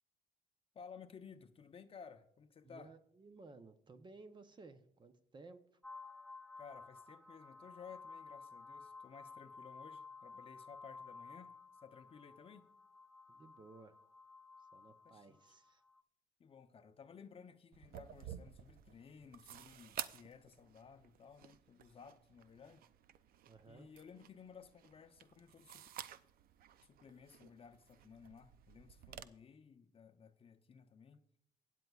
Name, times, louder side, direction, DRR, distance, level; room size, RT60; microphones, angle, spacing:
voice 1, 0.7-2.9 6.6-11.5 11.8-12.7 15.0-15.4 16.4-22.8 23.7-25.9 26.8-31.2, left 6 dB, 35° left, 0.7 m, -57 dB
voice 2, 2.6-5.6 13.3-14.0 14.7-15.8 23.5-23.9, right 3 dB, 25° right, 0.8 m, -57 dB
sound 1, 5.8-16.0, left 4 dB, 5° left, 0.4 m, -54 dB
sound 2, 17.7-29.2, right 10 dB, 60° right, 0.5 m, -52 dB
16.0 x 9.2 x 2.4 m
cardioid pair, 110°, 17 cm